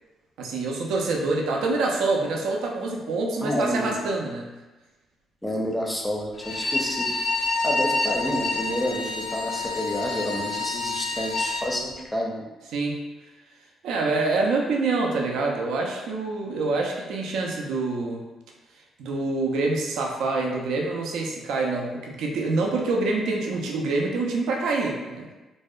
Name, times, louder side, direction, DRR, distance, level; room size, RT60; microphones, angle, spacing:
voice 1, 0.4-4.5 12.7-13.0 13.8-18.2 19.0-25.3, right 3 dB, 85° right, 0 dB, 0.4 m, -26 dB
voice 2, 3.4-3.9 5.4-7.1 7.6-12.4, equal, 10° left, -1 dB, 0.5 m, -29 dB
Bowed string instrument, 6.3-11.7, left 3 dB, 90° left, 0.4 m, -28 dB
2.6 x 2.1 x 2.3 m, 1.1 s
cardioid pair, 90°, 0 cm